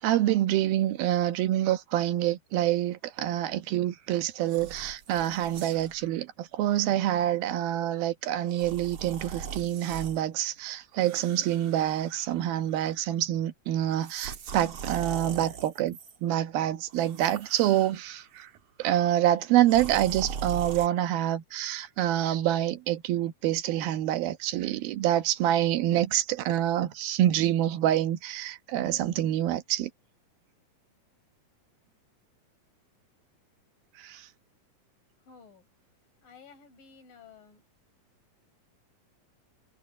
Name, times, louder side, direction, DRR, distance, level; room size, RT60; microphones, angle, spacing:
voice 1, 0.0-18.5 18.8-29.9 34.0-34.2, right 12 dB, 90° right, 3.0 m, -27 dB
sound 1, 4.4-6.0 6.7-6.9 8.5-10.2 11.0-12.4 12.7-13.1 13.9-16.2 16.9-18.3 19.6-20.9, right 6 dB, 45° right, 1.9 m, -41 dB
voice 2, 35.3-35.6 36.2-37.6, left 5 dB, 70° left, 6.2 m, -53 dB
omnidirectional pair, 4.1 m